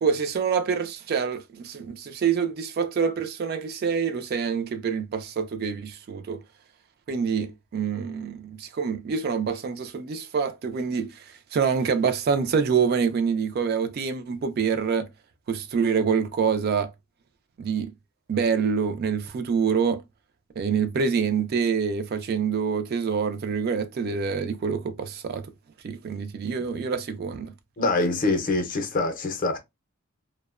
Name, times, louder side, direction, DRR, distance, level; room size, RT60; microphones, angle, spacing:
voice 1, 0.0-6.4 7.1-11.2 11.5-15.1 15.5-16.9 17.6-17.9 18.3-20.0 20.6-25.5 25.8-27.5, right 6 dB, 45° right, 0.3 m, -26 dB
voice 2, 27.8-29.6, left 2 dB, 40° left, 0.5 m, -24 dB
2.7 x 2.0 x 2.3 m
head